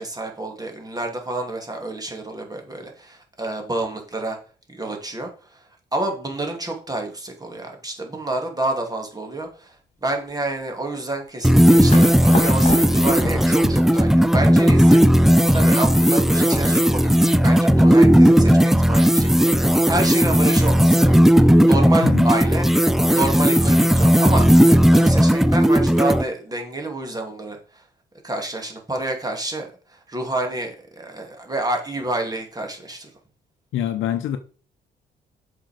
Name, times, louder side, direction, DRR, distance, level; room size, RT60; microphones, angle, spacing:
voice 1, 0.0-4.4 4.7-5.6 5.9-9.8 10.0-15.0 15.5-22.7 23.0-27.8 28.2-33.1, right 2 dB, 20° right, 2.6 m, -28 dB
sound 1, 11.4-26.2, equal, ahead, 0.5 m, -15 dB
sound 2, 11.9-14.9, left 3 dB, 35° left, 2.4 m, -31 dB
voice 2, 33.7-34.4, left 10 dB, 80° left, 0.8 m, -25 dB
7.7 x 5.5 x 5.0 m
cardioid pair, 90°, 20 cm